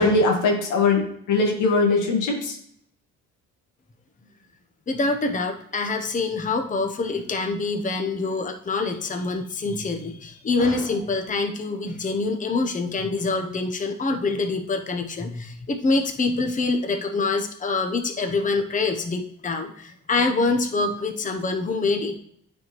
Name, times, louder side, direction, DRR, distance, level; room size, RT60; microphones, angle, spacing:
voice 1, 0.0-2.6 10.6-10.8, left 3 dB, 90° left, 2 dB, 1.7 m, -21 dB
voice 2, 4.9-22.2, left 3 dB, 25° left, 5 dB, 0.8 m, -25 dB
9.4 x 4.3 x 3.0 m, 0.68 s
cardioid pair, 90°, 30 cm